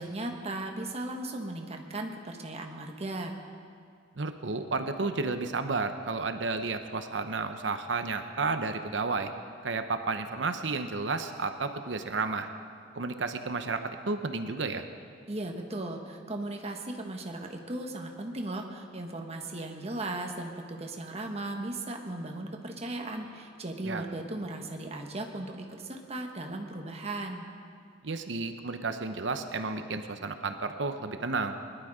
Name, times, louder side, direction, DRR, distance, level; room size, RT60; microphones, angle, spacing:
voice 1, 0.0-3.3 15.3-27.4, right 2 dB, 35° right, 3 dB, 1.4 m, -37 dB
voice 2, 4.2-9.3 9.6-12.5 12.9-14.8 23.8-24.0 28.0-31.6, right 3 dB, 75° right, 8 dB, 0.8 m, -32 dB
20.5 x 11.5 x 5.0 m, 2.2 s
head